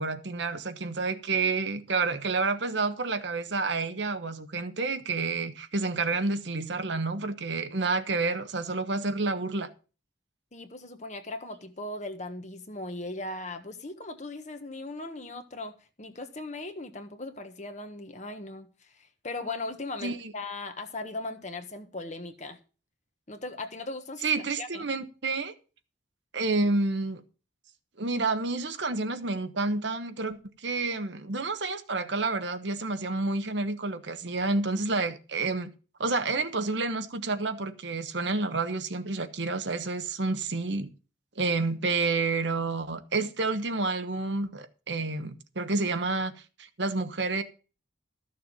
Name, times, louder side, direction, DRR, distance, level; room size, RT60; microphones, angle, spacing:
voice 1, 0.0-9.7 20.0-20.3 24.2-25.5 26.3-27.2 28.0-35.7 36.0-40.9 41.4-46.3 46.6-47.4, right 3 dB, 65° right, 1.1 m, -29 dB
voice 2, 10.5-22.6 23.3-24.3 24.6-24.9, left 2 dB, 40° left, 1.3 m, -38 dB
13.5 x 6.8 x 5.3 m
head